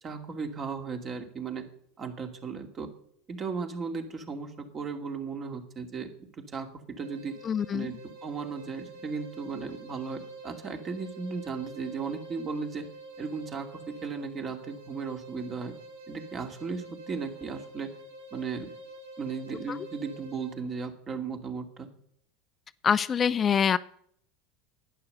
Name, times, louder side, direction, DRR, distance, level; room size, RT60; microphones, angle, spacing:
voice 1, 0.0-1.6 2.0-2.9 3.3-7.4 7.7-8.0 8.2-12.8 13.2-15.7 16.1-17.9 18.3-18.7 19.2-21.9, right 5 dB, 35° right, 6 dB, 2.4 m, -36 dB
sound 1, 7.0-20.6, right 2 dB, 80° right, 3.6 m, -47 dB
voice 2, 7.4-7.9 19.7-19.8 22.8-23.8, left 7 dB, 30° left, 16 dB, 0.4 m, -25 dB
11.5 x 9.6 x 6.7 m, 0.67 s
hypercardioid pair, 80°, 0 cm